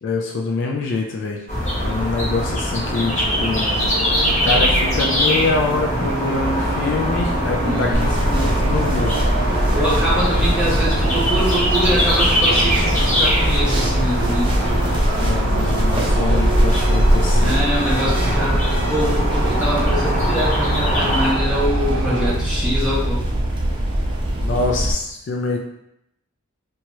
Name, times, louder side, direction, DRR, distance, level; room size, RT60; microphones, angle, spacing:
voice 1, 0.0-1.4 1.8-3.7 4.4-9.2 15.2-17.7 24.4-25.6, left 3 dB, 60° left, 1 dB, 0.3 m, -25 dB
sound 1, 1.5-21.3, equal, 35° left, 0.9 m, -22 dB
sound 2, 3.2-22.4, right 3 dB, 85° right, 0.5 m, -30 dB
voice 2, 7.6-8.1 9.7-14.5 17.4-18.6 18.9-23.2, equal, 5° right, -9 dB, 1.0 m, -24 dB
sound 3, 7.9-24.9, equal, 25° right, 0.5 m, -21 dB
2.9 x 2.3 x 2.9 m, 0.80 s
head